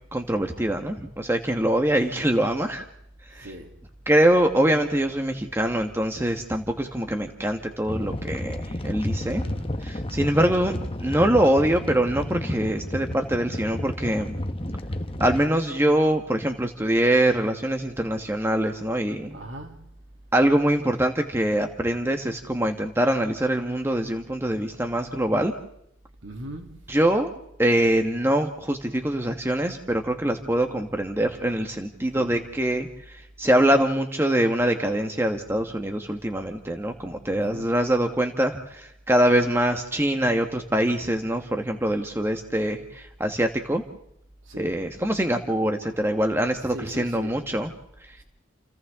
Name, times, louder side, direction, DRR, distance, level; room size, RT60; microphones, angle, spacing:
voice 1, 0.1-2.8 3.4-3.5 4.1-9.4 9.8-10.7 11.0-14.3 15.2-19.3 20.3-25.5 26.9-27.3 27.6-43.8 44.6-47.7 48.1-48.2, right 1 dB, 15° right, 1.2 m, -24 dB
voice 2, 3.4-3.7 9.2-10.4 19.3-19.9 26.2-26.9 32.1-32.3 37.3-37.7 44.5-44.7 46.7-47.4, right 1 dB, 85° right, 2.8 m, -40 dB
sound 1, 7.9-15.4, left 1 dB, 30° left, 1.1 m, -32 dB
29.5 x 29.0 x 3.6 m
head